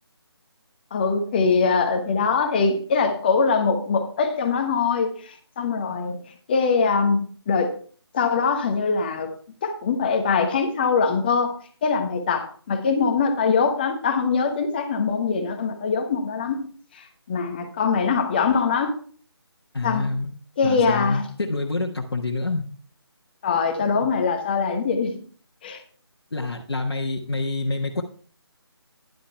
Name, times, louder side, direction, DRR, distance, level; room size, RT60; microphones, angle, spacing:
voice 1, 0.9-7.7 8.1-9.3 9.6-11.5 11.8-16.6 16.9-18.9 19.8-20.1 20.6-21.2 23.4-25.2 25.6-25.8, left 5 dB, 20° left, 6 dB, 1.2 m, -23 dB
voice 2, 19.7-20.3 20.6-22.7 26.3-28.0, left 3 dB, 60° left, -1 dB, 1.5 m, -27 dB
11.0 x 9.9 x 3.4 m, 0.43 s
figure-of-eight pair, 155°, 14 cm